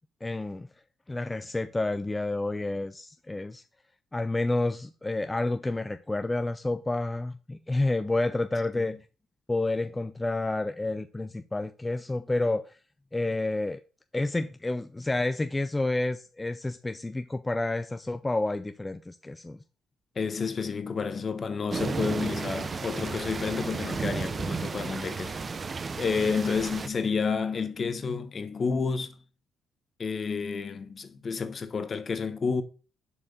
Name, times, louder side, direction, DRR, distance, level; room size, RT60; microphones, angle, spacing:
voice 1, 0.2-0.7 1.1-3.6 4.1-8.9 9.5-12.8 13.1-13.8 14.1-19.6, left 2 dB, 15° left, 0.4 m, -29 dB
voice 2, 20.1-29.2 30.0-32.6, left 5 dB, 40° left, 1.1 m, -30 dB
sound 1, 21.7-26.9, right 4 dB, 35° right, 0.7 m, -33 dB
7.0 x 4.7 x 6.6 m
cardioid pair, 90°, 0 cm